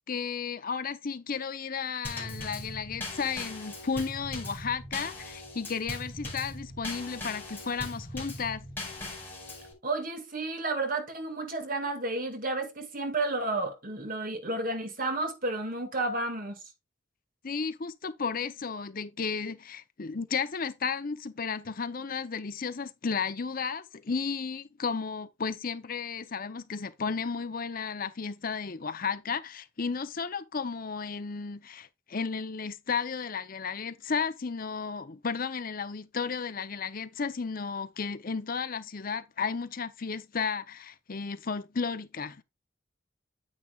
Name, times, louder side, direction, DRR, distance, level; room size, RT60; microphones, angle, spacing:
voice 1, 0.1-8.7 17.4-42.4, left 5 dB, 45° left, 0.7 m, -33 dB
Drum kit / Snare drum / Bass drum, 2.0-9.7, left 2 dB, 10° left, 5.3 m, -40 dB
voice 2, 9.8-16.6, right 2 dB, 45° right, 2.1 m, -31 dB
9.7 x 8.7 x 2.4 m
head